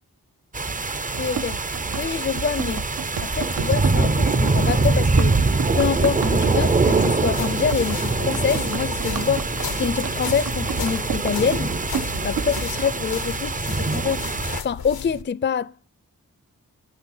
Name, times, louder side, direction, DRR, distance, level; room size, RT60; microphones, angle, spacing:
sound 1, 0.5-14.6, right 3 dB, 25° right, 0.5 m, -23 dB
Run, 1.1-12.8, right 7 dB, 75° right, 0.7 m, -32 dB
voice 1, 1.2-1.6 1.9-2.8 3.2-5.4 5.7-11.8 12.2-14.3 14.6-15.8, left 7 dB, 35° left, 0.4 m, -26 dB
sound 2, 6.6-15.2, left 7 dB, 90° left, 0.7 m, -35 dB
9.0 x 6.2 x 5.7 m
cardioid pair, 50°, 36 cm